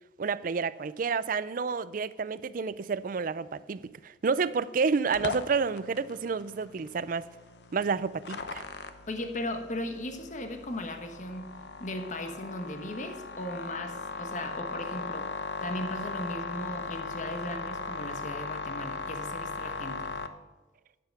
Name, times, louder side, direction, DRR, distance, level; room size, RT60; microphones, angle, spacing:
voice 1, 0.2-7.3 7.7-8.6, right 5 dB, 50° right, 0.4 m, -30 dB
sound 1, 5.1-20.3, left 4 dB, 70° left, 0.8 m, -38 dB
voice 2, 9.1-11.5 11.8-20.1, left 1 dB, 45° left, 1.1 m, -37 dB
11.0 x 7.8 x 5.9 m
head